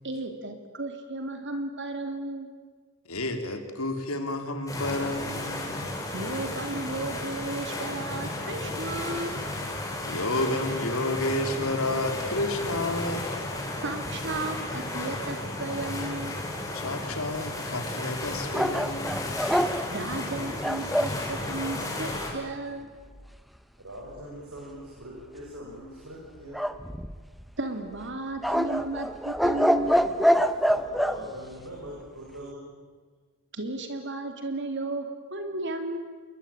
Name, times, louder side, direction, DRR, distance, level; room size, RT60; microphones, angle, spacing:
voice 1, 0.0-2.5 6.1-9.3 13.8-16.4 19.9-22.9 27.6-30.0 33.5-36.0, right 2 dB, 55° right, 6 dB, 3.1 m, -34 dB
voice 2, 3.1-5.9 10.0-13.3 16.7-19.3, left 2 dB, 80° left, 6 dB, 3.5 m, -30 dB
sound 1, 4.7-22.3, left 2 dB, 15° left, 5.5 m, -34 dB
sound 2, 18.5-21.2 26.5-27.4 28.4-31.2, equal, ahead, 1.0 m, -25 dB
voice 3, 23.8-26.8 30.6-32.8, equal, 85° right, -3 dB, 7.4 m, -42 dB
28.5 x 22.0 x 9.1 m, 1.5 s
head